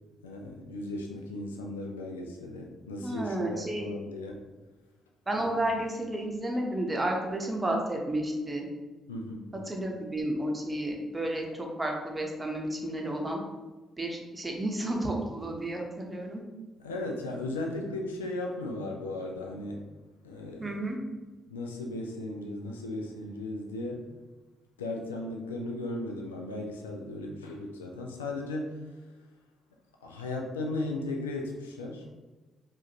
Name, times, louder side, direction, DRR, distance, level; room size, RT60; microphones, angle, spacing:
voice 1, 0.2-4.4 5.4-5.5 9.1-9.5 16.8-19.8 20.2-20.8 21.5-24.1 24.8-28.9 30.0-32.1, left 2 dB, 80° left, 1 dB, 0.4 m, -36 dB
voice 2, 3.0-3.9 5.3-8.6 9.7-13.4 14.0-16.4 20.6-21.0, right 1 dB, 20° right, 1 dB, 0.9 m, -31 dB
4.9 x 2.5 x 2.8 m, 1.2 s
figure-of-eight pair, 40°, 0 cm